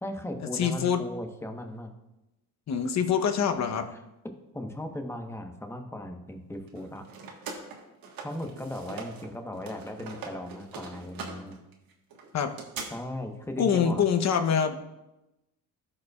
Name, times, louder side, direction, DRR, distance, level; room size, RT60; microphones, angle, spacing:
voice 1, 0.0-1.9 4.5-7.0 8.2-11.6 12.9-14.0, left 1 dB, 5° left, 4 dB, 1.1 m, -37 dB
voice 2, 0.5-1.0 2.7-3.9 12.3-12.5 13.6-14.8, left 7 dB, 45° left, 6 dB, 0.9 m, -25 dB
sound 1, 6.7-9.3 9.5-12.9, right 5 dB, 70° right, 1.5 m, -42 dB
14.0 x 5.4 x 2.4 m, 0.95 s
cardioid pair, 90°, 36 cm